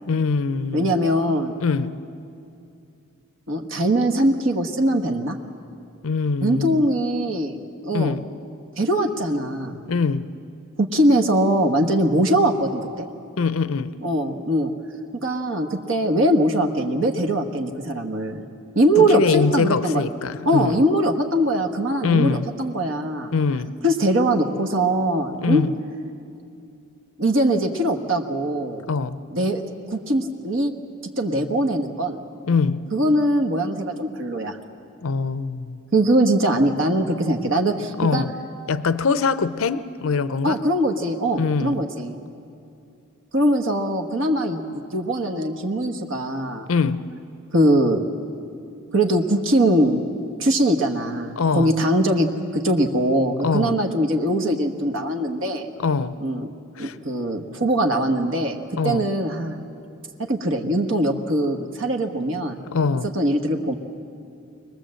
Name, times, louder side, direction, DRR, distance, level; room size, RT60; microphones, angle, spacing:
voice 1, 0.1-0.9 1.6-1.9 6.0-6.8 7.9-8.2 9.9-10.3 13.4-14.0 19.0-20.8 22.0-22.5 23.3-23.8 25.4-25.7 28.9-29.2 32.4-32.8 35.0-35.8 38.0-38.3 38.7-40.6 41.4-41.8 46.7-47.0 51.4-51.7 53.4-53.8 55.8-56.1 56.8-56.9 58.7-59.1 62.7-63.1, left 4 dB, 80° left, 13 dB, 0.6 m, -23 dB
voice 2, 0.7-1.6 3.5-5.4 6.4-7.6 7.8-8.2 8.8-9.8 10.8-13.1 14.0-14.7 15.2-18.4 18.7-20.0 20.4-23.3 23.8-25.6 27.2-28.8 29.3-29.6 29.9-30.7 31.2-32.2 32.9-34.6 35.9-38.2 40.4-42.2 43.3-46.7 47.5-48.0 48.9-50.0 50.4-52.3 52.5-55.7 56.2-56.5 56.8-58.6 58.8-59.6 60.2-62.6 63.1-63.7, right 1 dB, 65° right, 4 dB, 1.3 m, -21 dB
24.0 x 19.5 x 7.7 m, 2.6 s
head